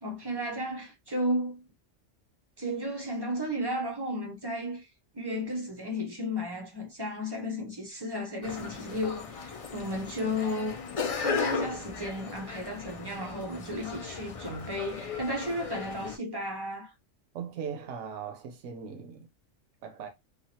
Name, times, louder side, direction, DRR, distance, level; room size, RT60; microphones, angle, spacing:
voice 1, 0.0-1.6 2.6-4.9 5.1-10.8 11.1-16.9, equal, 25° right, 0.6 m, -33 dB
sound 1, 8.4-16.2, left 5 dB, 55° left, 0.3 m, -36 dB
voice 2, 17.3-19.3 19.8-20.1, right 7 dB, 75° right, 1.0 m, -39 dB
3.0 x 2.4 x 2.8 m
omnidirectional pair, 1.3 m